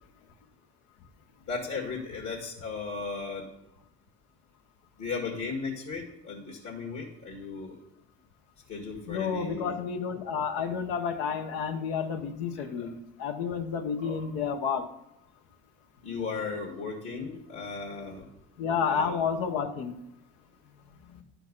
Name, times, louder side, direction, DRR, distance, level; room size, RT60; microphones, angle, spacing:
voice 1, 1.5-3.5 5.0-7.8 8.7-9.7 12.5-12.9 14.0-14.3 16.0-18.3 18.9-19.1 21.1-21.2, left 4 dB, 60° left, -2 dB, 1.9 m, -36 dB
voice 2, 9.1-14.8 18.6-20.0, left 6 dB, 85° left, 7 dB, 1.0 m, -30 dB
11.0 x 4.6 x 5.4 m, 0.86 s
supercardioid pair, 80°, 33 cm